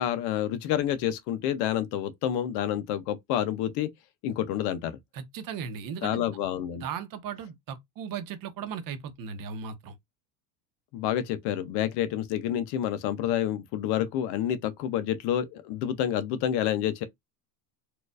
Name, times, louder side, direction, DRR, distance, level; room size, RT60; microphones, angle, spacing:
voice 1, 0.0-3.9 4.2-5.0 6.0-6.8 10.9-17.0, left 11 dB, 55° left, 0.7 m, -28 dB
voice 2, 5.1-6.3 6.7-9.9, right 7 dB, 45° right, 0.9 m, -37 dB
4.3 x 2.5 x 2.4 m
supercardioid pair, 115°, 47 cm